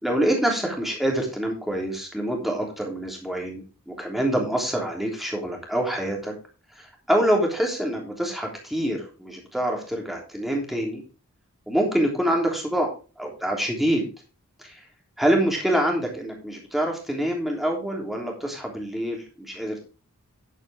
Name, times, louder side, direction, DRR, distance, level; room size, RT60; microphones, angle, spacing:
voice 1, 0.0-6.3 6.8-11.0 11.7-12.9 13.2-14.0 14.6-14.7 15.2-19.8, right 1 dB, ahead, 0 dB, 3.2 m, -26 dB
11.0 x 8.8 x 3.6 m, 0.33 s
head